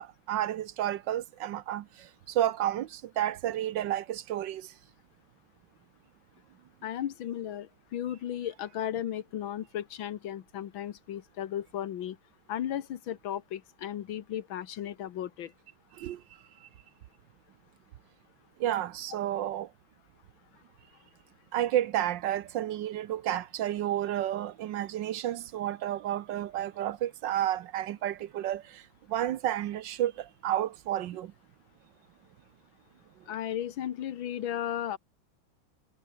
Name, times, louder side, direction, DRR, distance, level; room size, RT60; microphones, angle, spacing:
voice 1, 0.0-4.7 15.9-16.2 16.6-16.7 18.6-19.7 21.5-31.3, right 12 dB, 70° right, 1.4 m, -31 dB
voice 2, 6.8-12.2 12.5-15.5 33.3-35.0, left 10 dB, 80° left, 1.9 m, -35 dB
omnidirectional pair, 2.2 m